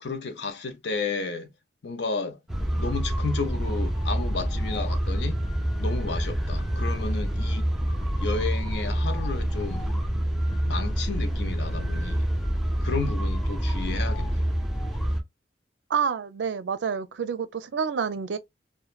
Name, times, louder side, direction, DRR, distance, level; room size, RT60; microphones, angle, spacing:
voice 1, 0.0-1.5 1.8-2.4 2.8-5.4 5.8-7.7 8.1-9.9 10.6-12.3 12.8-14.6, left 4 dB, 75° left, 0.6 m, -32 dB
sound 1, 2.5-15.2, equal, ahead, 0.6 m, -27 dB
voice 2, 15.9-18.4, right 6 dB, 85° right, 0.4 m, -28 dB
3.1 x 2.1 x 2.3 m
head